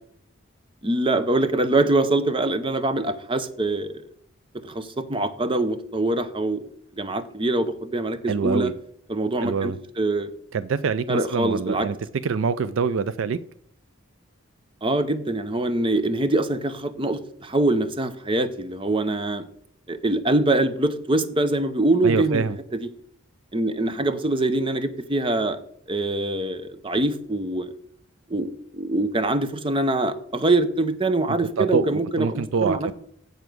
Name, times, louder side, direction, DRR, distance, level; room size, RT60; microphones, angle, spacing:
voice 1, 0.8-3.9 4.6-6.7 7.0-8.7 9.1-10.3 11.1-11.9 14.8-19.4 19.9-22.9 23.5-25.6 25.9-27.7 28.3-32.9, right 2 dB, 25° right, 11 dB, 0.7 m, -24 dB
voice 2, 8.3-8.7 9.4-9.8 10.5-12.0 12.2-13.4 22.0-22.6 31.6-32.9, right 5 dB, 65° right, 15 dB, 0.4 m, -25 dB
8.0 x 6.9 x 6.1 m, 0.66 s
head